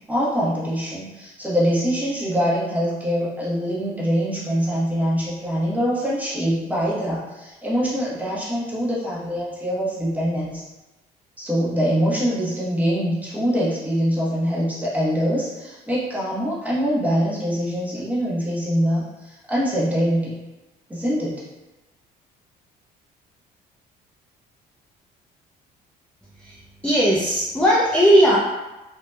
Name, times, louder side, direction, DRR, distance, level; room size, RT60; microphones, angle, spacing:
voice 1, 0.1-10.6 11.4-20.3 20.9-21.4, equal, 10° right, -7 dB, 0.8 m, -24 dB
voice 2, 26.4-28.4, equal, 5° left, -6 dB, 0.3 m, -18 dB
2.7 x 2.1 x 2.2 m, 1.1 s
cardioid pair, 110°, 17 cm